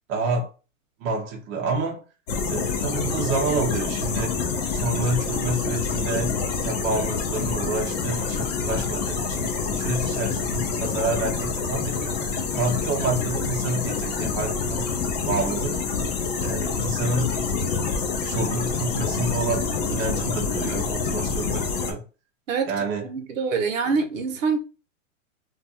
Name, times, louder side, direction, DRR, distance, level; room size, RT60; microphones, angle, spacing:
voice 1, 0.1-0.5 1.0-2.0 2.5-4.3 4.7-6.3 6.6-12.1 12.5-14.9 15.3-15.7 16.4-17.3 18.2-22.0 22.6-23.1, right 3 dB, 25° right, 0.4 m, -28 dB
sound 1, 2.3-21.9, left 5 dB, 35° left, 0.4 m, -27 dB
voice 2, 23.0-24.6, right 5 dB, 75° right, 0.8 m, -25 dB
2.3 x 2.2 x 2.7 m
hypercardioid pair, 145°, 40 cm